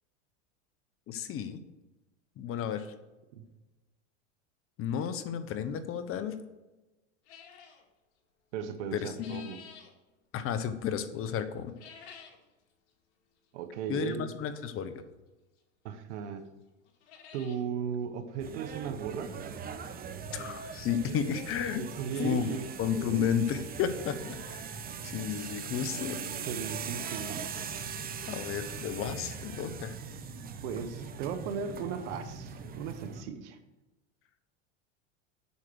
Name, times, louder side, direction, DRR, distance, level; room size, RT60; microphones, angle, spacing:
voice 1, 1.1-1.6 2.4-2.9 4.8-6.4 8.9-9.4 10.3-11.7 13.9-14.9 20.3-21.8 22.2-22.5 22.8-24.8 25.0-26.2 28.3-30.0, left 8 dB, 40° left, 11 dB, 1.0 m, -32 dB
sound 1, 7.3-7.8 8.8-9.9 11.6-12.5 12.9-13.0 13.8-13.9 15.6-15.7 16.1-16.2 16.5-16.6 16.8-17.6 18.0-18.1 18.3-18.4 20.0-20.1 20.8-20.9 21.1-21.2 21.7-22.7 23.1-23.2 23.7-23.8 24.2-24.3 26.0-26.1 26.3-26.4 26.8-26.9, left 7 dB, 75° left, 2.1 m, -52 dB
voice 2, 8.5-9.6 13.5-14.3 15.8-16.5 17.3-19.3 21.8-22.6 23.1-23.3 26.5-27.5 30.6-33.6, right 7 dB, 70° right, 10 dB, 1.2 m, -36 dB
sound 2, 18.4-33.2, right 6 dB, 25° right, 0.9 m, -40 dB
8.3 x 6.6 x 6.3 m, 1.1 s
supercardioid pair, 115°, 36 cm